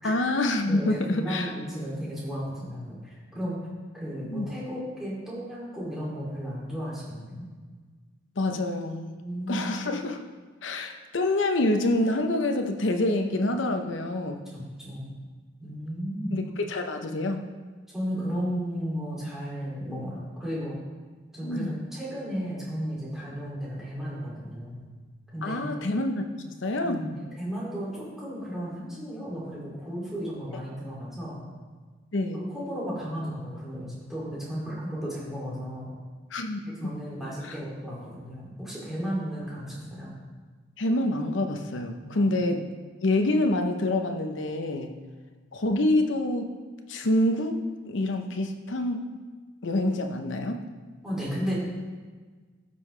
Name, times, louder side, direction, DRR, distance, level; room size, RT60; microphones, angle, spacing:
voice 1, 0.0-1.5 4.2-4.5 8.4-9.1 9.5-10.2 10.6-14.4 16.3-17.4 21.4-21.8 25.4-27.1 32.1-32.4 36.3-36.9 37.4-37.5 40.8-42.7 43.0-44.9 45.5-46.5 46.9-49.1 49.6-50.6, left 1 dB, 80° left, 5 dB, 0.8 m, -27 dB
voice 2, 0.7-3.6 3.9-7.5 9.2-9.6 14.5-15.1 15.6-16.4 17.9-20.8 21.3-24.8 25.3-25.6 26.8-31.4 32.3-35.9 36.8-40.1 42.0-42.3 51.0-51.6, equal, ahead, -7 dB, 2.6 m, -34 dB
13.0 x 5.5 x 3.3 m, 1.4 s
head